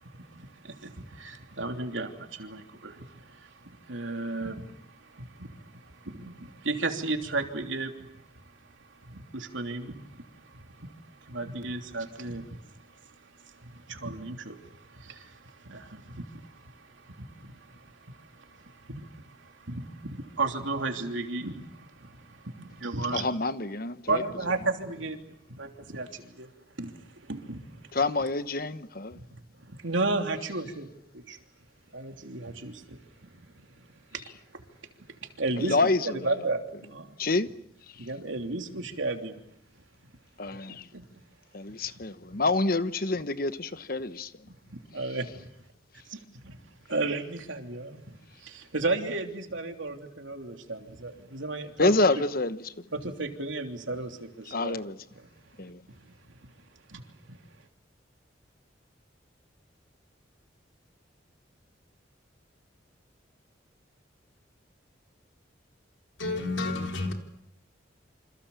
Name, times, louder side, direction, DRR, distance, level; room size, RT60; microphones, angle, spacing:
voice 1, 0.0-23.3 24.1-25.2 25.6-26.5 26.8-27.7 29.1-31.4 31.9-33.6 34.1-34.2 34.5-34.6 35.2-35.8 36.2-36.6 36.9-37.2 38.0-39.4 40.5-40.6 40.9-41.0 44.7-45.3 46.1-46.6 46.9-52.2 52.9-54.8 56.0-56.5 56.9-57.0 57.3-57.4, right 3 dB, 85° right, 3.2 m, -35 dB
voice 2, 23.1-24.2 27.9-29.2 35.6-36.3 37.2-37.5 37.9-38.1 40.4-40.9 41.5-43.5 43.9-44.3 51.8-52.8 54.5-55.0 55.6-55.8, left 2 dB, 50° left, 1.2 m, -27 dB
voice 3, 66.2-67.1, left 2 dB, 80° left, 4.0 m, -30 dB
28.0 x 26.5 x 7.1 m
head